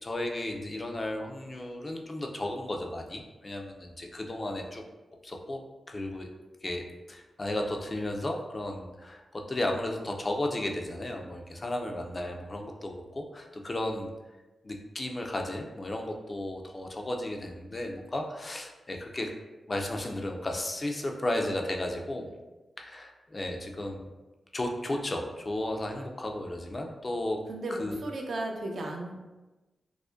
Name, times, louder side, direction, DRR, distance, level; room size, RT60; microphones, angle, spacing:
voice 1, 0.0-4.8 5.2-5.6 5.9-6.3 6.6-14.1 14.6-19.3 19.7-22.3 22.8-24.1 24.5-27.4 27.8-28.0, left 1 dB, 30° left, 2 dB, 0.4 m, -34 dB
voice 2, 27.5-29.2, right 2 dB, 65° right, 0 dB, 0.6 m, -35 dB
4.8 x 2.1 x 2.5 m, 1.1 s
wide cardioid pair, 105°, 0 cm